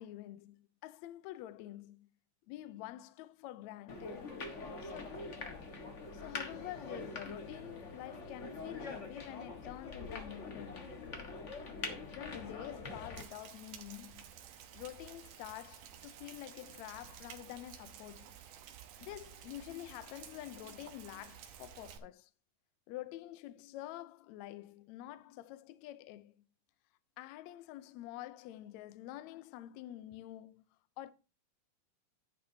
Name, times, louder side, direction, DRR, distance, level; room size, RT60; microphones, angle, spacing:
voice 1, 0.0-2.1 2.5-4.4 4.8-5.3 6.1-10.9 12.1-14.3 14.7-18.4 19.0-22.3 22.9-26.3 27.2-30.6 31.0-31.1, left 14 dB, 75° left, 1.8 m, -48 dB
sound 1, 3.9-13.2, left 3 dB, 50° left, 0.8 m, -44 dB
Rain, 13.2-22.0, right 9 dB, 80° right, 2.4 m, -53 dB
10.5 x 10.5 x 2.7 m
omnidirectional pair, 3.6 m